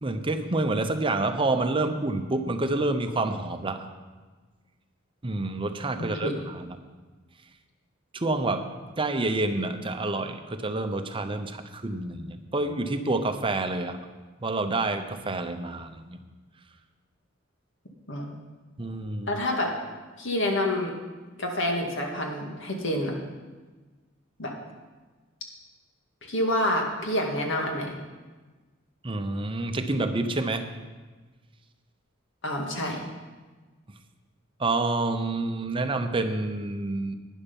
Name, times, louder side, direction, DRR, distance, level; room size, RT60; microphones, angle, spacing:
voice 1, 0.0-3.9 5.2-6.8 8.1-8.7 9.0-14.0 14.4-16.2 18.8-19.3 29.0-30.7 34.6-37.1, right 2 dB, 25° right, 7 dB, 0.8 m, -28 dB
voice 2, 19.3-19.7 20.2-20.9 21.4-23.1 24.4-24.5 26.2-28.0 32.4-33.0, left 1 dB, 65° left, 1 dB, 2.1 m, -27 dB
11.5 x 10.0 x 5.4 m, 1.3 s
head